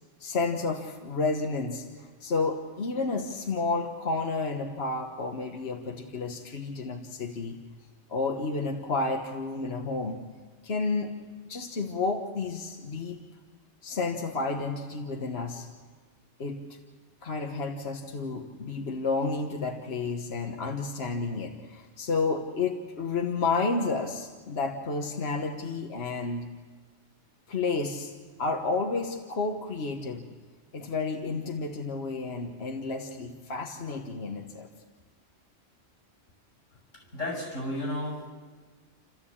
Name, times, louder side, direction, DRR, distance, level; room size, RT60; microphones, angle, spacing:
voice 1, 0.2-7.6 8.1-10.2 10.6-11.1 11.4-13.2 13.8-15.7 16.4-16.6 17.2-26.5 27.5-28.1 28.4-30.3 30.7-34.7, left 3 dB, 60° left, 2 dB, 1.5 m, -31 dB
voice 2, 36.9-38.3, left 1 dB, 90° left, -1 dB, 7.8 m, -33 dB
29.5 x 14.0 x 8.6 m, 1.5 s
omnidirectional pair, 1.2 m